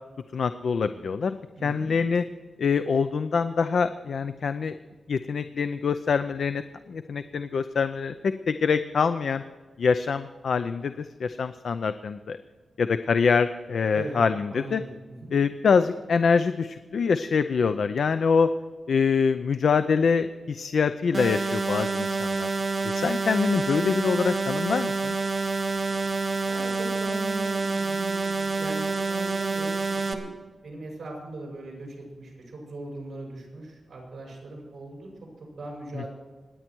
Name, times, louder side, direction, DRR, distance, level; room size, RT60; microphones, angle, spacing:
voice 1, 0.3-1.3 1.6-2.2 2.6-4.7 5.1-6.6 6.9-9.4 9.8-12.4 12.8-14.8 15.3-18.5 18.9-22.5 22.8-25.2 36.0-36.1, left 5 dB, 65° left, 10 dB, 0.5 m, -25 dB
voice 2, 1.5-1.9 13.9-14.2 14.5-15.3 26.4-30.3 30.6-35.3 35.6-36.1, right 2 dB, 50° right, 0 dB, 6.0 m, -39 dB
sound 1, 21.1-30.1, right 3 dB, 35° right, 1.4 m, -28 dB
26.0 x 10.0 x 4.6 m, 1.4 s
wide cardioid pair, 165°, 0 cm